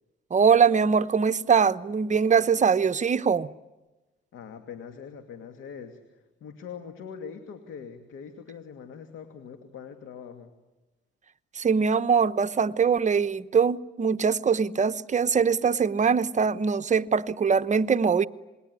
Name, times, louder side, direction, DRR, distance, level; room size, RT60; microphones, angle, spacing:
voice 1, 0.3-3.5 11.5-18.2, right 6 dB, 35° right, 1.0 m, -22 dB
voice 2, 4.3-10.5, left 6 dB, 80° left, 2.5 m, -42 dB
28.0 x 21.5 x 9.8 m
cardioid pair, 90°, 20 cm